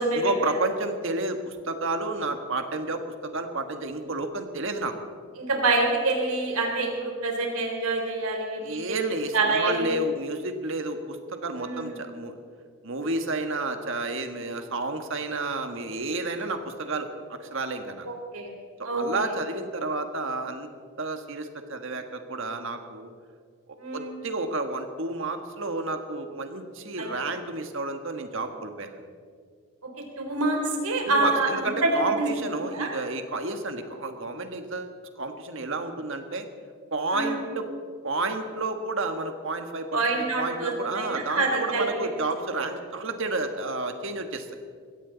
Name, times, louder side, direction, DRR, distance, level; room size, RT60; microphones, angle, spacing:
voice 1, 0.1-3.0 3.3-4.9 8.6-12.4 12.8-18.1 18.9-20.7 21.0-23.1 23.9-29.1 31.1-36.5 36.9-37.7 38.0-40.0 40.4-44.5, right 2 dB, 60° right, 6 dB, 1.5 m, -31 dB
voice 2, 5.4-8.8 9.3-9.9 11.6-12.0 18.1-18.5 18.8-19.0 23.8-24.1 27.0-27.1 30.2-32.3 32.7-32.9 37.1-37.3 39.9-42.1, right 2 dB, 90° right, 1 dB, 3.6 m, -26 dB
22.0 x 16.5 x 4.0 m, 2.1 s
head